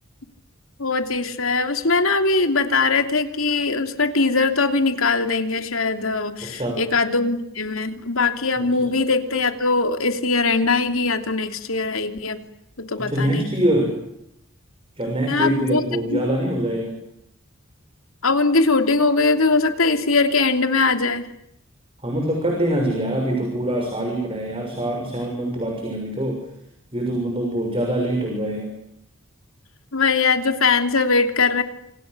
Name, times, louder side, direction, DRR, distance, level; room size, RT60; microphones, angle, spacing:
voice 1, 0.8-12.4 12.9-13.5 15.3-15.8 16.1-16.2 18.2-21.3 29.9-31.6, left 3 dB, 85° left, 7 dB, 3.0 m, -21 dB
voice 2, 6.4-6.8 8.6-8.9 13.0-14.0 15.0-16.9 22.0-26.4 26.9-28.8, right 1 dB, 25° right, 2 dB, 6.7 m, -24 dB
28.5 x 27.5 x 6.9 m, 0.78 s
head